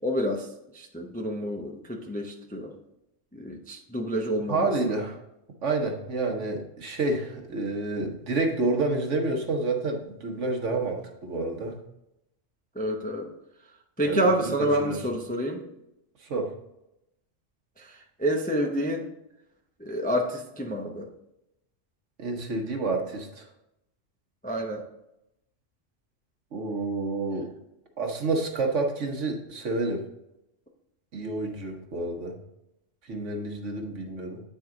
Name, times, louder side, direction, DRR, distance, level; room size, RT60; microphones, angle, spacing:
voice 1, 0.0-0.5 0.7-2.7 3.3-4.7 12.7-13.3 14.0-15.6 17.8-19.1 19.8-21.1 24.4-24.8, equal, 10° left, 1 dB, 0.4 m, -28 dB
voice 2, 4.4-5.2 5.6-11.8 14.0-14.5 14.8-15.0 16.2-16.5 22.2-23.5 26.5-27.5 28.0-30.0 31.1-32.3 33.0-34.4, right 3 dB, 70° right, 3 dB, 1.4 m, -29 dB
8.6 x 4.5 x 3.7 m, 0.86 s
omnidirectional pair, 1.3 m